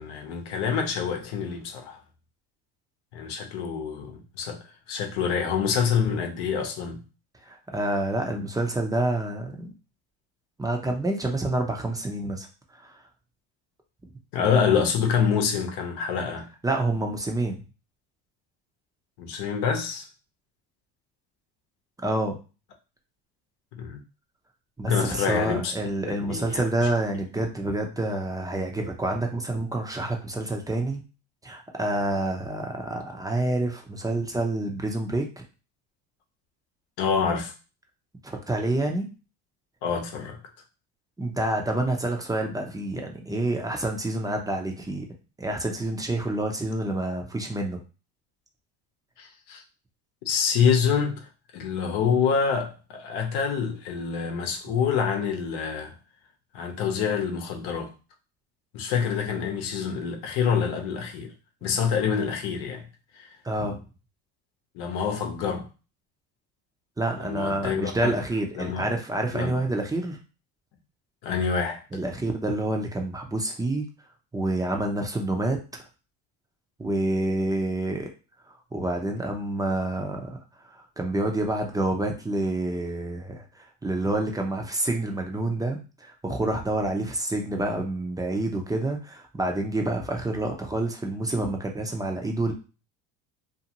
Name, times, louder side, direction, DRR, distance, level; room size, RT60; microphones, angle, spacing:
voice 1, 0.0-2.0 3.1-4.6 4.9-7.0 14.3-16.5 19.2-20.1 23.7-24.0 24.9-25.7 26.0-26.6 37.0-37.5 39.8-40.4 49.2-49.6 50.3-51.3 51.5-55.9 56.5-57.9 58.7-61.3 61.6-62.9 63.2-63.3 64.7-65.7 67.2-68.1 68.5-68.9 69.3-69.6 71.2-71.8, left 6 dB, 70° left, 0.8 m, -26 dB
voice 2, 7.5-9.7 10.6-12.5 12.8-13.0 16.6-17.6 22.0-22.4 24.8-31.0 31.4-35.4 38.2-39.1 41.2-45.1 45.4-47.8 63.4-63.8 67.0-70.2 71.9-73.9 74.3-75.6 76.8-78.1 78.7-80.4 80.6-92.5, right 2 dB, 10° right, 0.6 m, -28 dB
2.6 x 2.5 x 2.8 m
supercardioid pair, 95°, 41 cm